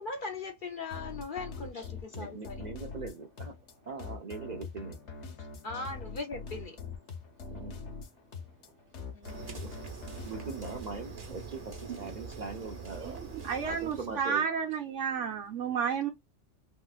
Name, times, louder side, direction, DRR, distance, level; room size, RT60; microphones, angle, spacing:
voice 1, 0.0-2.7 5.6-6.8 9.1-9.6, left 3 dB, 55° left, 0.6 m, -39 dB
sound 1, 0.9-10.8, left 4 dB, 70° left, 1.0 m, -43 dB
voice 2, 2.1-3.5 3.9-5.0 5.4-5.5 5.7-5.9 7.5-7.8 9.5-9.7 10.3-13.2 13.6-14.4, right 4 dB, 55° right, 0.5 m, -41 dB
sound 2, 9.2-14.3, right 5 dB, 35° right, 1.0 m, -44 dB
voice 3, 12.9-16.1, right 7 dB, 90° right, 1.1 m, -32 dB
3.2 x 2.9 x 2.3 m
omnidirectional pair, 1.2 m